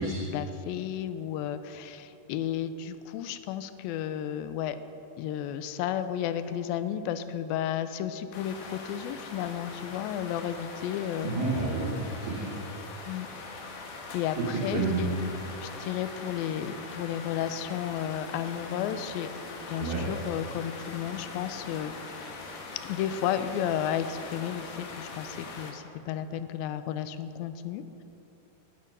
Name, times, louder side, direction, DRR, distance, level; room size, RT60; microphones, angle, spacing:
voice 1, 0.0-4.8 5.2-11.3 13.1-13.3 14.1-15.1 15.6-19.3 19.7-21.9 22.8-28.0, left 10 dB, 85° left, 11 dB, 2.4 m, -33 dB
sound 1, 8.3-25.7, left 3 dB, 60° left, 2.0 m, -42 dB
voice 2, 11.2-12.6 14.4-14.5 14.7-15.0 19.8-20.0, right 3 dB, 80° right, -7 dB, 3.4 m, -30 dB
12.0 x 9.0 x 5.4 m, 3.0 s
omnidirectional pair, 4.2 m